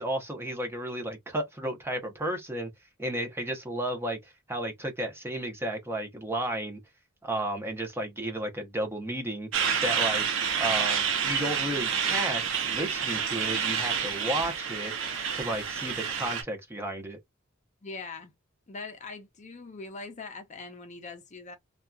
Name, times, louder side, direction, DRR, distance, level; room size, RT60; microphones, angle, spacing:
voice 1, 0.0-2.7 3.0-6.8 7.2-9.5 9.8-10.3 10.6-14.9 15.3-17.2, right 1 dB, 10° right, 0.7 m, -33 dB
Truck, 9.5-16.4, right 7 dB, 65° right, 0.7 m, -29 dB
voice 2, 17.8-18.3 18.7-21.5, left 3 dB, 35° left, 0.6 m, -41 dB
2.8 x 2.4 x 2.2 m
head